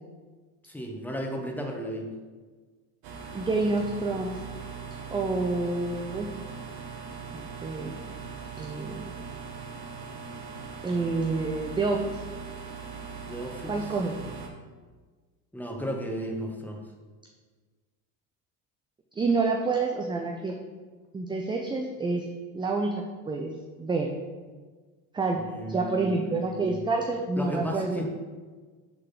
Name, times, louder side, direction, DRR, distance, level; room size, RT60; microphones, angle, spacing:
voice 1, 0.6-2.1 13.3-13.9 15.5-16.8 25.3-26.8 27.4-28.1, equal, 5° left, 1 dB, 1.1 m, -34 dB
sound 1, 3.0-14.5, right 5 dB, 60° right, 1.2 m, -40 dB
voice 2, 3.3-4.4 5.1-6.3 7.3-8.0 8.6-9.1 10.8-12.2 13.7-14.1 19.2-20.5 21.1-22.2 22.5-22.9 23.3-23.5 23.8-24.1 25.1-25.4 25.7-28.1, right 3 dB, 10° right, 2 dB, 0.3 m, -28 dB
6.8 x 3.7 x 5.7 m, 1.4 s
supercardioid pair, 100°, 45 cm